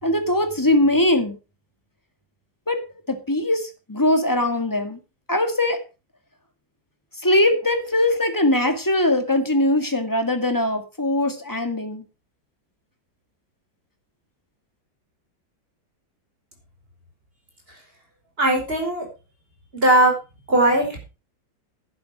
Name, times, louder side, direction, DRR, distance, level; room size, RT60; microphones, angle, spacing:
voice 1, 0.0-1.4 2.7-2.8 3.1-5.0 5.3-5.8 7.2-12.0, left 1 dB, 10° left, 6 dB, 1.8 m, -21 dB
voice 2, 18.4-19.1 19.7-20.1 20.5-21.1, right 1 dB, 30° right, 1 dB, 5.3 m, -18 dB
11.0 x 10.5 x 5.0 m, 0.30 s
omnidirectional pair, 2.1 m